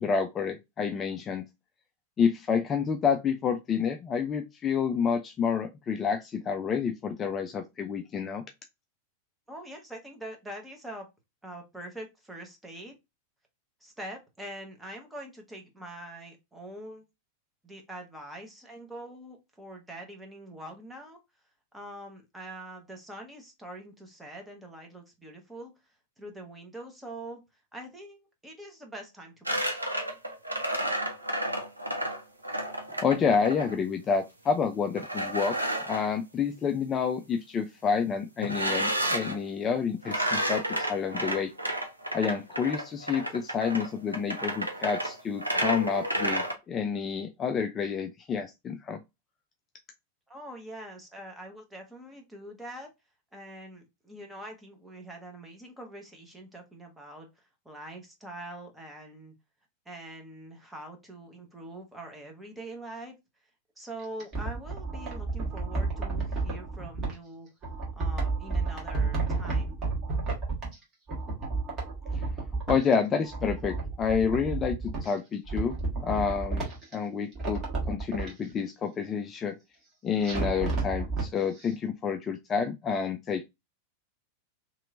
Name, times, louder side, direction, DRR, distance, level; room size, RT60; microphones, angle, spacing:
voice 1, 0.0-1.5 2.2-8.4 33.0-35.6 35.9-41.5 42.1-49.0 72.1-72.2 72.7-79.5 80.0-83.4, left 6 dB, 25° left, 0.4 m, -29 dB
voice 2, 9.5-11.1 11.4-12.9 13.8-17.0 17.6-21.2 21.7-25.7 26.2-27.4 27.7-29.6 50.3-52.9 53.3-57.3 57.6-59.3 59.8-63.1 63.8-67.5 68.0-69.8, right 1 dB, 5° right, 1.1 m, -44 dB
sound 1, 29.5-33.7 35.0-36.1 38.4-39.4 40.0-46.5, right 1 dB, 85° right, 0.6 m, -31 dB
sound 2, 64.0-67.1 67.6-70.8 71.1-72.9 73.2-75.1 75.4-76.9 77.3-78.3 80.2-81.3 81.6-81.7, right 3 dB, 30° right, 1.6 m, -31 dB
3.1 x 2.9 x 2.5 m
figure-of-eight pair, 90°, 0 cm